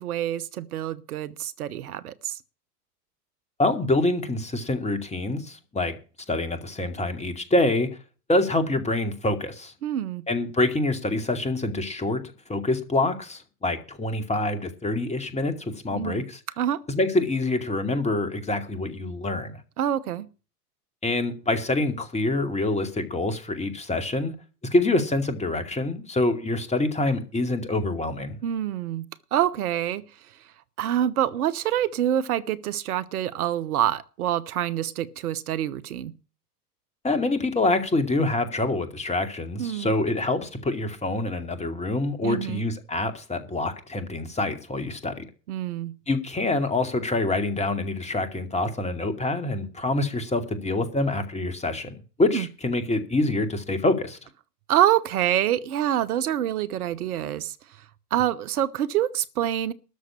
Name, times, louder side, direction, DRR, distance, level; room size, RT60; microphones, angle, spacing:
voice 1, 0.0-2.4 9.8-10.2 15.9-16.2 16.6-16.8 19.8-20.3 28.4-30.0 30.8-36.1 39.6-39.9 42.2-42.6 45.5-45.9 52.3-52.5 54.7-57.6 58.1-59.7, right 11 dB, 70° right, 1.1 m, -26 dB
voice 2, 3.6-6.0 6.3-7.9 8.3-9.7 10.3-12.2 12.5-16.4 16.9-19.6 21.0-24.3 24.7-28.4 37.0-45.2 46.1-54.2, left 2 dB, 15° left, 2.4 m, -26 dB
13.0 x 6.5 x 8.4 m
figure-of-eight pair, 90°, 47 cm